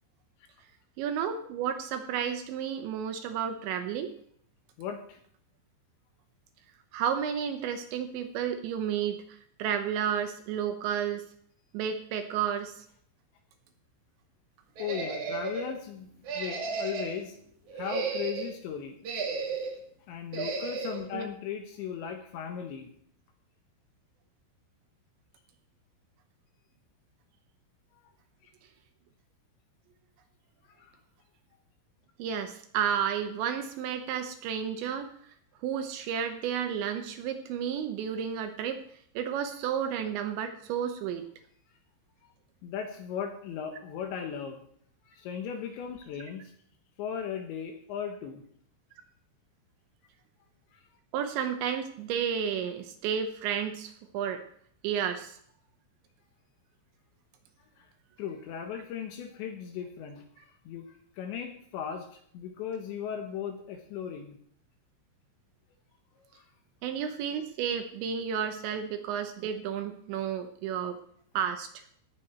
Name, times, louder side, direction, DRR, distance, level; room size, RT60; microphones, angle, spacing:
voice 1, 1.0-4.1 6.9-9.2 9.6-11.3 11.7-12.8 21.1-21.3 32.2-35.1 35.6-38.8 39.2-41.3 51.1-54.4 54.8-55.4 66.8-71.0 71.3-71.7, right 8 dB, 80° right, 7 dB, 2.8 m, -32 dB
voice 2, 4.8-5.2 14.8-16.1 16.3-17.4 17.7-19.0 20.1-22.9 30.8-30.9 42.6-44.6 45.0-46.5 47.0-48.4 50.7-50.8 57.8-57.9 58.2-62.1 62.3-64.4 66.3-66.4, left 8 dB, 70° left, 5 dB, 3.1 m, -37 dB
sound 1, 14.8-15.7 16.2-17.2 17.7-18.5 19.0-19.8 20.3-21.0, right 4 dB, 50° right, 2.5 m, -34 dB
18.0 x 8.4 x 4.4 m, 0.64 s
omnidirectional pair, 6.0 m